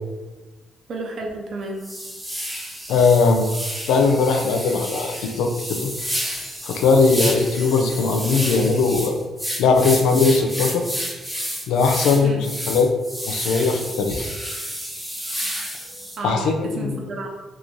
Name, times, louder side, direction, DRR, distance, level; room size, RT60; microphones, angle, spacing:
voice 1, 0.9-1.8 12.2-12.4 16.2-17.3, right 2 dB, 60° right, 1 dB, 0.7 m, -31 dB
sound 1, 1.2-1.3 1.8-16.2, equal, 5° right, 0.7 m, -30 dB
voice 2, 2.9-3.5 3.9-5.9 6.6-9.2 9.6-10.9 11.7-12.9 13.3-14.3 16.2-17.0, left 4 dB, 90° left, 4 dB, 0.4 m, -19 dB
Bicycle bell, 3.7-5.3 6.0-7.1 7.5-8.8 9.5-9.6, left 2 dB, 25° left, 1.0 m, -44 dB
3.0 x 2.6 x 3.6 m, 1.2 s
cardioid pair, 90°, 0 cm